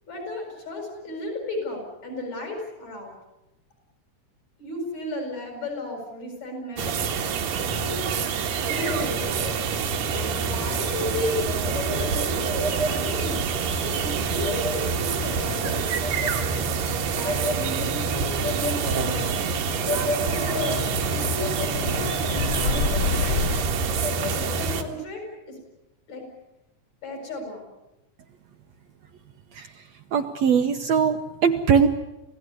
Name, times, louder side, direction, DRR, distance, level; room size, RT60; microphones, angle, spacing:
voice 1, 0.1-3.1 4.6-7.1 7.8-8.0 8.6-9.4 10.1-13.4 13.8-16.0 17.1-19.5 20.2-23.4 24.2-25.6 26.1-26.3 27.0-27.7, left 1 dB, 55° left, 3 dB, 8.7 m, -34 dB
sound 1, 6.8-24.8, right 5 dB, 85° right, 3.4 m, -26 dB
sound 2, 9.2-23.6, left 5 dB, 85° left, 0.8 m, -34 dB
voice 2, 29.5-29.8 30.1-31.9, right 6 dB, 65° right, 6 dB, 1.9 m, -21 dB
27.0 x 17.0 x 9.9 m, 0.95 s
omnidirectional pair, 3.8 m